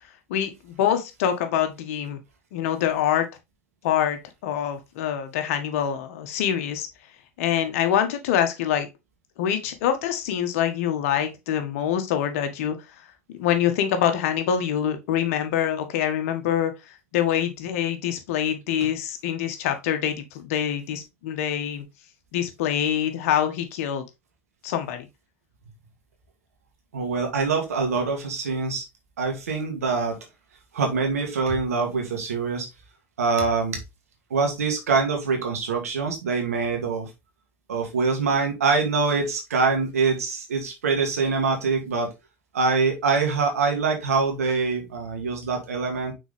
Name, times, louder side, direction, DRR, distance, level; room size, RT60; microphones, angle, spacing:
voice 1, 0.3-2.2 2.5-3.3 3.8-6.9 7.4-8.9 9.4-13.0 13.4-21.8 22.3-24.0 24.6-25.1, left 9 dB, 70° left, 1.6 m, -25 dB
voice 2, 26.9-28.8 29.2-30.2 30.7-32.7 33.2-33.8 34.3-37.1 37.7-42.1 42.5-46.1, right 4 dB, 90° right, 2.2 m, -24 dB
6.2 x 4.6 x 3.6 m
hypercardioid pair, 80°, 8 cm